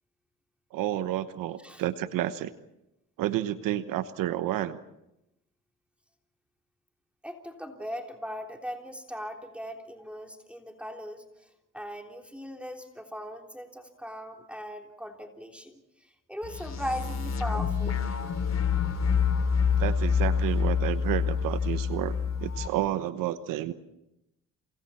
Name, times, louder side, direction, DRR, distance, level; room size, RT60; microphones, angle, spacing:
voice 1, 0.7-2.5 3.2-4.8 19.8-22.1 22.4-23.7, right 13 dB, 90° right, 12 dB, 1.1 m, -30 dB
voice 2, 7.2-11.5 11.7-18.0, equal, 5° right, 3 dB, 3.4 m, -39 dB
sound 1, 16.4-22.7, left 6 dB, 55° left, 3.5 m, -27 dB
29.0 x 28.5 x 4.3 m, 0.87 s
cardioid pair, 70°, 32 cm